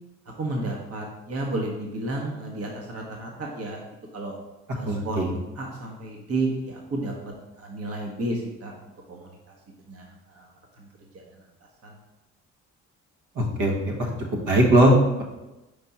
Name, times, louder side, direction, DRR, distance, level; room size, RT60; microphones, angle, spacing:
voice 1, 0.4-3.8 4.1-4.3 4.7-8.7 9.1-10.9 11.1-11.2 11.8-12.0, right 2 dB, 45° right, 0 dB, 1.2 m, -32 dB
voice 2, 4.9-5.3 13.3-14.1 14.5-14.9, right 1 dB, 65° right, -1 dB, 1.5 m, -20 dB
5.3 x 4.6 x 4.2 m, 1.0 s
supercardioid pair, 60°, 33 cm